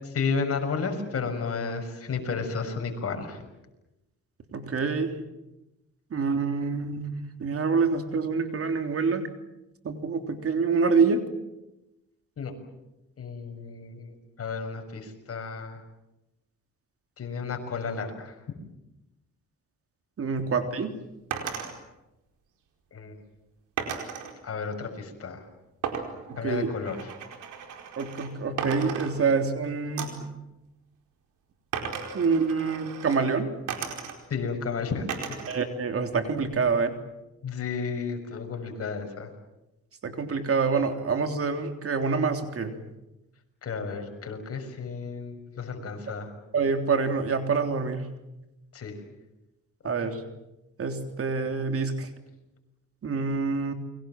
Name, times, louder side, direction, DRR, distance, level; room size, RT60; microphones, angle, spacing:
voice 1, 0.0-3.4 12.4-12.5 13.2-15.8 17.2-18.4 22.9-23.2 24.4-25.4 26.4-27.1 34.3-35.4 37.4-39.3 43.6-46.3 48.7-49.0 50.0-50.1, left 5 dB, 50° left, 5 dB, 6.4 m, -32 dB
voice 2, 4.5-5.1 6.1-7.1 7.4-9.3 9.8-11.2 20.2-20.9 26.4-26.7 28.0-30.1 32.1-33.5 35.5-36.9 40.0-42.7 46.5-48.0 49.8-50.1 50.8-52.1 53.0-53.7, right 5 dB, 50° right, 6 dB, 3.4 m, -26 dB
sound 1, 21.3-21.7 23.8-24.3 25.8-28.3 28.6-29.5 30.0-30.3 31.7-33.2 33.7-34.4 35.1-35.6 36.0-36.8, right 7 dB, 85° right, 4.7 m, -35 dB
29.5 x 23.0 x 7.6 m, 0.96 s
cardioid pair, 90°, 30 cm